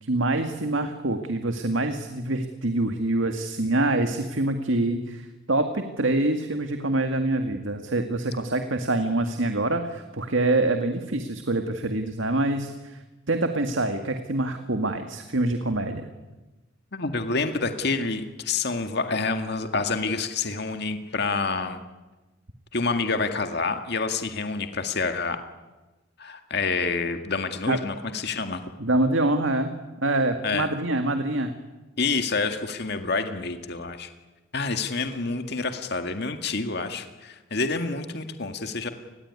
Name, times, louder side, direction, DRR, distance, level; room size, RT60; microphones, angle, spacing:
voice 1, 0.0-16.1 27.7-27.8 28.8-29.7 30.0-31.5, right 2 dB, 80° right, 6 dB, 2.0 m, -25 dB
voice 2, 16.9-21.8 22.7-25.4 26.2-28.6 30.4-30.7 32.0-34.1 34.5-38.9, left 4 dB, 55° left, 7 dB, 2.0 m, -28 dB
29.0 x 21.0 x 9.7 m, 1.1 s
head